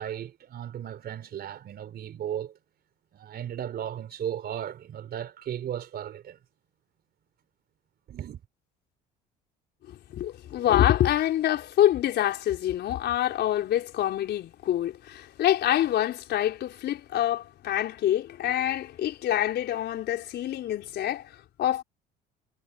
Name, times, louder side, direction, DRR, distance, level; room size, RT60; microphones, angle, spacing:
voice 1, 0.0-2.6 3.1-6.4 8.1-8.4, right 10 dB, 50° right, 3.9 m, -35 dB
voice 2, 9.9-21.8, left 12 dB, 60° left, 4.4 m, -26 dB
hypercardioid pair, 65°, 20 cm